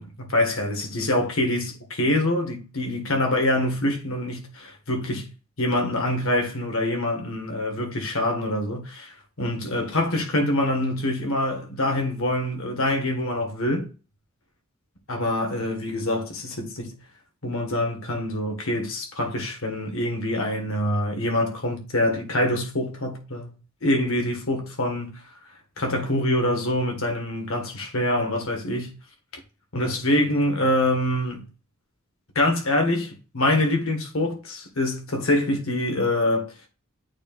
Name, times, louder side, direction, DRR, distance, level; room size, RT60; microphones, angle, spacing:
voice 1, 0.0-5.3 5.6-13.9 15.1-17.0 17.4-23.6 23.8-25.2 25.8-28.9 29.7-31.4 32.4-36.5, left 1 dB, 65° left, 1.9 m, -25 dB
8.6 x 4.6 x 2.6 m
head